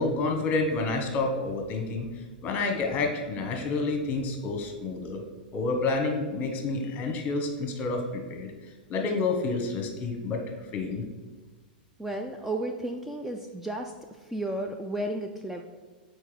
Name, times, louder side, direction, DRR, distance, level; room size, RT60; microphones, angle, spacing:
voice 1, 0.0-2.1 2.4-5.2 5.5-8.5 8.9-10.4 10.7-11.0, left 3 dB, 35° left, 3 dB, 1.2 m, -29 dB
voice 2, 12.0-13.9 14.3-15.6, right 1 dB, 5° right, 2 dB, 0.4 m, -33 dB
4.4 x 4.4 x 5.0 m, 1.3 s
hypercardioid pair, 105°, 5 cm